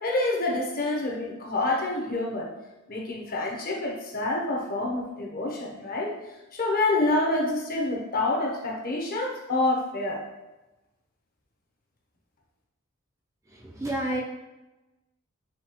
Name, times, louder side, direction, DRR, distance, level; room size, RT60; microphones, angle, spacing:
voice 1, 0.0-2.5 2.9-6.1 6.5-10.2, left 2 dB, 45° left, -1 dB, 0.8 m, -27 dB
voice 2, 13.5-14.2, right 1 dB, 15° right, -1 dB, 0.4 m, -30 dB
5.7 x 2.3 x 2.9 m, 1.0 s
head